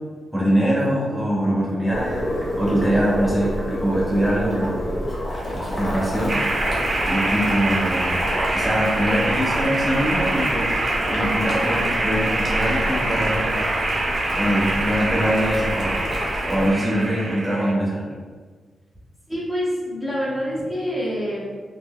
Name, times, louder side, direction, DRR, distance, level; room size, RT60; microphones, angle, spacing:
voice 1, 0.3-2.2 2.6-5.0 5.5-6.6 7.0-8.2 8.5-10.7 11.1-13.7 14.3-16.0 16.5-18.0, equal, 5° right, -7 dB, 1.1 m, -23 dB
Boiling, 1.9-16.7, equal, 45° left, 1.0 m, -28 dB
sound 1, 6.3-17.7, right 2 dB, 45° right, 0.5 m, -25 dB
voice 2, 19.3-21.5, equal, 20° left, -7 dB, 1.2 m, -26 dB
3.8 x 2.9 x 2.5 m, 1.5 s
cardioid pair, 60°, 0 cm